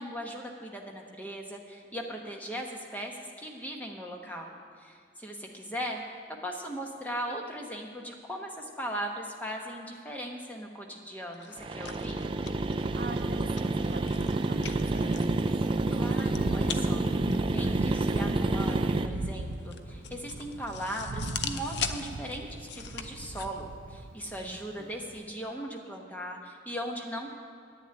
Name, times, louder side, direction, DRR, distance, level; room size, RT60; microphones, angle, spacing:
voice 1, 0.0-6.0 6.3-12.2 15.9-17.1 17.5-27.3, equal, 10° left, 1 dB, 1.0 m, -38 dB
sound 1, 11.3-23.5, left 7 dB, 65° left, 0.6 m, -42 dB
sound 2, 11.6-19.1, right 2 dB, 25° right, 0.4 m, -28 dB
Thunder, 11.9-25.2, right 2 dB, 85° right, 0.6 m, -40 dB
voice 2, 12.9-15.5 24.4-24.9, right 2 dB, 50° right, 5 dB, 0.7 m, -43 dB
10.5 x 7.0 x 8.8 m, 2.4 s
head